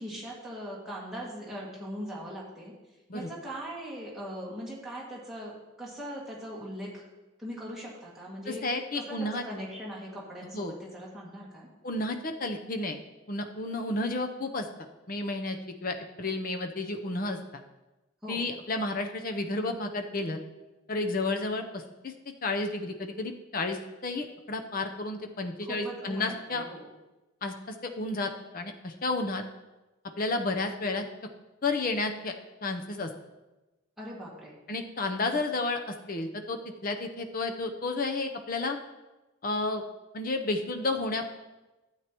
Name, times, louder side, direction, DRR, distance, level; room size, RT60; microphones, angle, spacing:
voice 1, 0.0-2.7 3.1-7.0 7.4-8.7 8.9-11.7 18.2-18.5 25.6-26.9 34.0-34.6, equal, ahead, -6 dB, 2.0 m, -40 dB
voice 2, 8.5-9.4 10.5-10.7 11.8-13.0 13.3-14.7 15.1-17.6 18.3-20.4 20.9-22.1 22.4-26.6 27.4-29.4 30.2-31.0 31.6-32.3 32.6-33.1 34.7-38.8 39.4-39.8 40.1-41.3, left 2 dB, 40° left, 5 dB, 0.7 m, -31 dB
12.5 x 8.4 x 3.0 m, 1.1 s
head